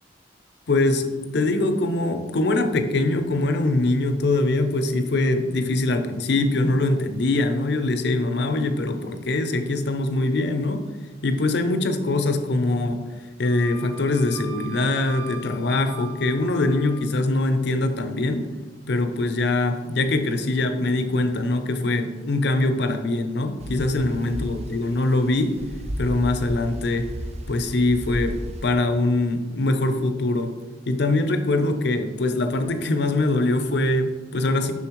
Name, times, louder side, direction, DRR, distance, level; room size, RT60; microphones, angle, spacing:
voice 1, 0.7-1.1 1.3-10.8 11.2-13.0 13.4-18.4 18.9-25.6 26.0-27.1 27.5-28.3 28.6-30.5 30.9-34.7, left 2 dB, 65° left, 7 dB, 0.6 m, -23 dB
Wind instrument woodwind instrument, 13.5-17.1, right 2 dB, 15° left, 0.5 m, -40 dB
sound 1, 23.6-28.7, equal, 35° right, 0.5 m, -34 dB
7.1 x 6.0 x 3.1 m, 1.3 s
head